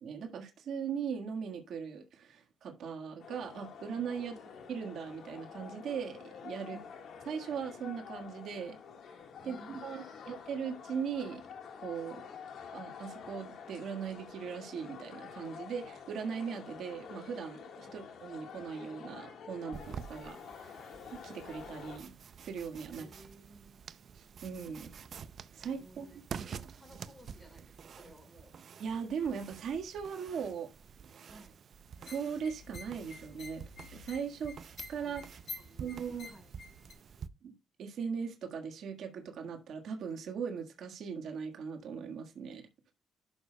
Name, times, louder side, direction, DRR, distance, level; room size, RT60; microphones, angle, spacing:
voice 1, 0.0-4.4 4.7-6.8 7.3-8.8 9.4-11.4 11.8-12.2 12.7-20.8 21.1-22.1 22.4-23.1 24.1-24.9 25.5-26.1 28.8-30.7 32.0-33.6 33.9-34.5 34.9-35.2 35.8-36.3 37.4-42.6, right 6 dB, 70° right, 1.5 m, -39 dB
sound 1, 3.2-22.0, left 6 dB, 75° left, 1.5 m, -48 dB
voice 2, 9.4-10.2 17.8-18.0 22.9-23.9 25.6-28.5 31.2-31.6 35.0-35.2 35.6-36.5, right 1 dB, 15° left, 4.4 m, -57 dB
sound 2, 19.7-37.3, right 7 dB, 55° right, 0.5 m, -49 dB
sound 3, 32.0-36.9, left 4 dB, 55° left, 2.1 m, -49 dB
11.5 x 6.7 x 2.2 m
cardioid pair, 90°, 0 cm